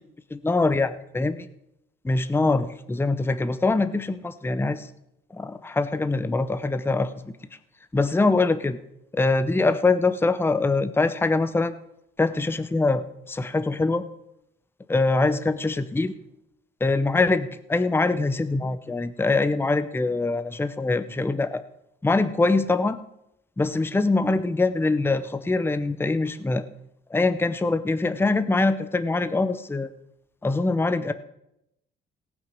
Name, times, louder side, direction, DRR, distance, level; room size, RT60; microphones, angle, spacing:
voice 1, 0.3-1.5 2.0-4.9 5.3-7.3 7.9-8.8 9.1-11.7 12.2-14.1 14.9-16.1 16.8-21.6 22.0-23.0 23.6-26.6 27.1-29.9 30.4-31.1, left 3 dB, 10° left, 12 dB, 0.7 m, -23 dB
18.0 x 6.1 x 5.4 m, 0.82 s
cardioid pair, 90°, 20 cm